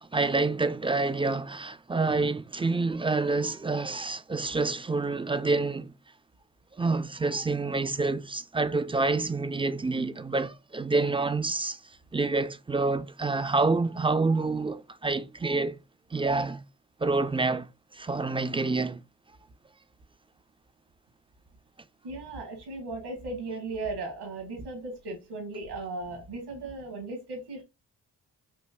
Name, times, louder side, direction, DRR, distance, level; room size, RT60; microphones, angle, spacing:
voice 1, 0.0-5.9 6.8-11.8 12.1-15.8 16.1-16.6 17.0-19.0, right 3 dB, 15° right, 0.3 m, -27 dB
voice 2, 22.0-27.6, right 3 dB, 80° right, 1.6 m, -37 dB
4.5 x 2.8 x 2.3 m
cardioid pair, 55°, 40 cm